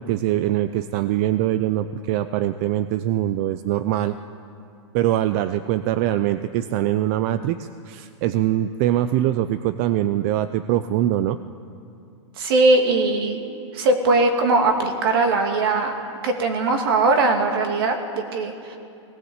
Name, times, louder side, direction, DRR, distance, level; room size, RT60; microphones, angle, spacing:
voice 1, 0.0-4.1 4.9-11.4, right 13 dB, 25° right, 12 dB, 0.4 m, -23 dB
voice 2, 12.4-13.4 13.7-15.9 16.2-18.8, right 3 dB, 50° right, 4 dB, 2.6 m, -20 dB
19.5 x 18.0 x 8.0 m, 2.5 s
supercardioid pair, 165°, 15 cm